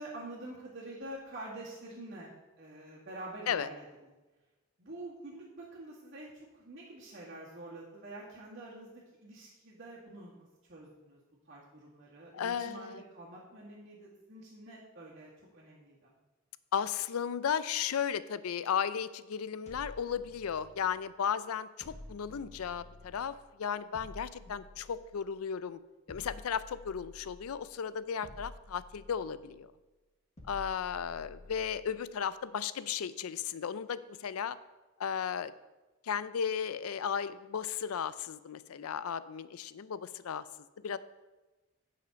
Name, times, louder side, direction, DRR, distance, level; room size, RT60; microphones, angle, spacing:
voice 1, 0.0-2.3 2.6-3.8 4.8-11.2 11.5-16.1 22.3-22.5 24.4-24.5 30.9-31.2, right 2 dB, 50° right, -9 dB, 2.0 m, -47 dB
voice 2, 12.3-13.0 16.7-25.8 26.1-29.7 30.5-34.6 35.0-35.5 36.0-40.4 40.8-41.0, left 7 dB, 90° left, 15 dB, 0.4 m, -35 dB
sound 1, 19.7-21.0 21.8-23.4 23.9-25.4 26.1-27.7 28.2-29.6 30.4-32.0, left 1 dB, 30° left, 1.3 m, -51 dB
9.2 x 5.8 x 5.2 m, 1.2 s
head